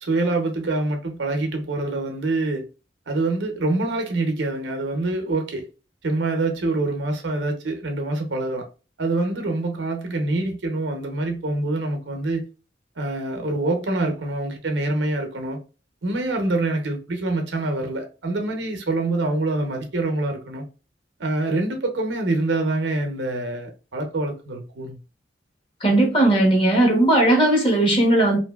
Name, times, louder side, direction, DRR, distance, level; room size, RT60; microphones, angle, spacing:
voice 1, 0.0-2.6 3.1-5.7 6.0-8.6 9.0-12.4 13.0-15.6 16.0-20.6 21.2-25.0, right 2 dB, 85° right, 0.7 m, -25 dB
voice 2, 25.8-28.4, right 1 dB, 30° left, 0.9 m, -17 dB
2.7 x 2.6 x 2.3 m
head